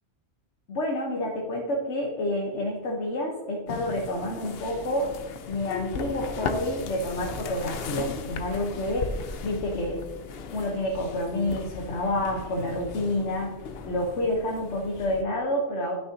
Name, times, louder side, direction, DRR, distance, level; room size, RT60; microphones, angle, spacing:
voice 1, 0.7-5.2 5.5-9.2 9.4-10.0 10.5-15.9, left 1 dB, 85° left, -1 dB, 1.4 m, -29 dB
sound 1, 3.7-15.2, left 5 dB, 65° left, 0.8 m, -37 dB
11.5 x 6.2 x 2.8 m, 1.2 s
omnidirectional pair, 1.2 m